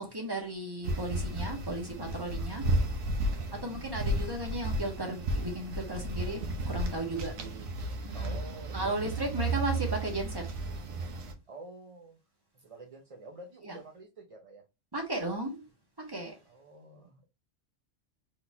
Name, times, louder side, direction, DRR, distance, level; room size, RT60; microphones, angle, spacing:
voice 1, 0.0-2.7 3.5-7.3 8.0-8.4 8.7-10.5 10.8-11.1 13.6-13.8 14.9-15.6 16.0-16.4, right 1 dB, 20° right, 1.4 m, -35 dB
sound 1, 0.8-11.3, right 1 dB, 90° right, 1.3 m, -33 dB
voice 2, 3.4-3.8 7.0-7.7 8.1-9.4 11.5-12.2 12.5-14.6 16.5-17.3, right 3 dB, 35° right, 0.5 m, -48 dB
4.2 x 4.0 x 2.7 m
omnidirectional pair, 1.3 m